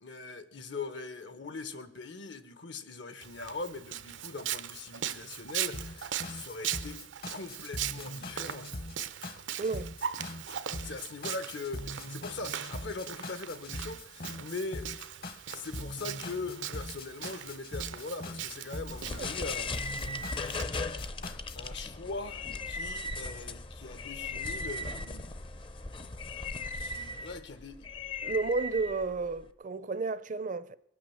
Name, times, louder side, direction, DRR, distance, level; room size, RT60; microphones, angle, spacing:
voice 1, 0.0-7.0 7.3-8.7 10.8-14.9 15.5-19.8 21.6-25.3 26.7-27.9, left 3 dB, 75° left, 1.2 m, -41 dB
Walk footsteps, 3.2-20.6, right 10 dB, 85° right, 0.7 m, -40 dB
sound 1, 5.7-21.7, left 1 dB, 50° left, 1.1 m, -42 dB
voice 2, 9.6-9.9 19.2-19.3 28.2-30.8, right 4 dB, 45° right, 0.5 m, -32 dB
sound 2, 18.9-29.5, left 3 dB, 25° left, 0.6 m, -38 dB
22.0 x 8.8 x 7.2 m
head